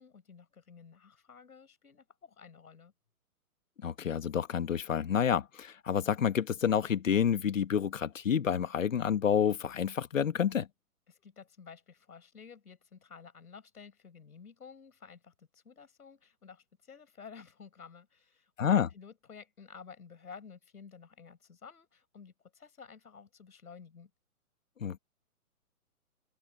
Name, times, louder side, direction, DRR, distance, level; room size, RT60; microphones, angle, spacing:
voice 1, 0.0-2.9 11.1-24.1, left 6 dB, 80° left, 6.2 m, -52 dB
voice 2, 3.8-10.7 18.6-18.9 24.8-25.0, left 8 dB, 60° left, 1.9 m, -29 dB
open air
hypercardioid pair, 175°, 44 cm